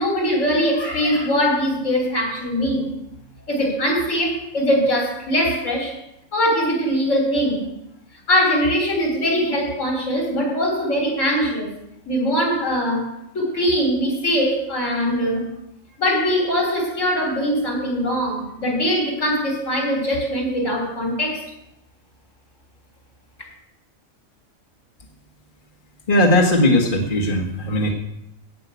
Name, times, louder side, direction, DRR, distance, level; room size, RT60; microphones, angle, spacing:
voice 1, 0.0-2.9 3.5-5.9 6.3-7.7 8.3-11.7 12.1-15.5 16.0-21.5, equal, 80° left, 0 dB, 3.7 m, -21 dB
voice 2, 26.1-27.9, left 1 dB, 45° left, 0 dB, 1.7 m, -18 dB
17.0 x 5.7 x 8.3 m, 0.82 s
omnidirectional pair, 1.3 m